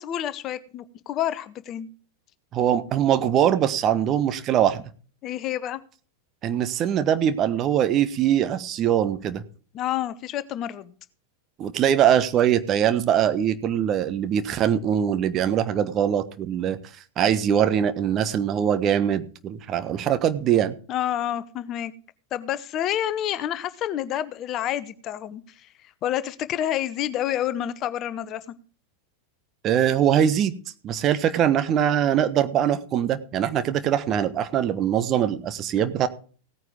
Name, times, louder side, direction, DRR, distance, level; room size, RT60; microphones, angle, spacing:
voice 1, 0.0-1.9 5.2-5.8 9.7-10.9 20.9-21.9 22.3-25.7 26.0-28.4, left 11 dB, 35° left, 15 dB, 0.9 m, -28 dB
voice 2, 2.5-4.8 6.4-9.4 11.6-16.8 17.2-20.7 29.6-30.5 30.8-36.1, right 9 dB, 30° right, 12 dB, 1.2 m, -22 dB
16.5 x 9.4 x 3.7 m, 0.41 s
figure-of-eight pair, 90°, 0 cm